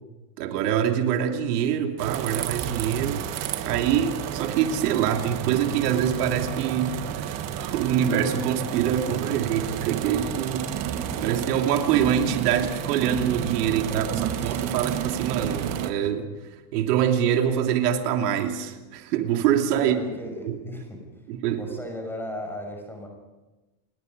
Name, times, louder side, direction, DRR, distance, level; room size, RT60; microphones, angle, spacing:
voice 1, 0.4-3.3 3.6-10.7 11.2-16.3 16.7-20.0 20.4-20.6 21.3-21.6, right 9 dB, 85° right, 4 dB, 3.1 m, -25 dB
sound 1, 2.0-15.9, right 9 dB, 35° right, 1.6 m, -31 dB
voice 2, 9.4-10.0 13.6-14.8 19.7-21.0 21.6-23.1, left 1 dB, 5° left, 2 dB, 5.9 m, -37 dB
29.5 x 20.5 x 5.4 m, 1.1 s
supercardioid pair, 165°, 46 cm